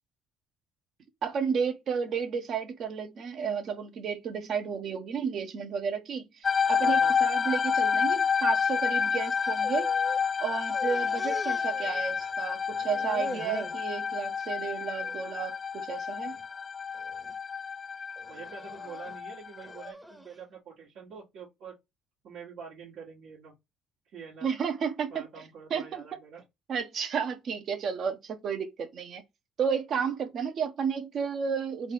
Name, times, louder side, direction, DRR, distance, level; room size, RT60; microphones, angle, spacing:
voice 1, 1.2-9.9 10.4-16.4 24.4-25.4 25.7-26.0 26.7-29.2 29.6-31.9, right 6 dB, 55° right, 1.0 m, -32 dB
sound 1, 6.4-19.9, left 6 dB, 35° left, 0.3 m, -29 dB
voice 2, 6.8-7.2 18.3-21.8 22.2-23.5 24.1-24.5 25.1-26.4, right 6 dB, 75° right, 1.9 m, -46 dB
sound 2, 9.2-10.2 10.5-12.4 12.7-13.8 14.3-14.7 15.0-15.2 16.0-16.4 16.9-17.3 18.2-20.4, right 1 dB, 5° right, 0.8 m, -43 dB
3.8 x 2.5 x 4.7 m
supercardioid pair, 85°, 0 cm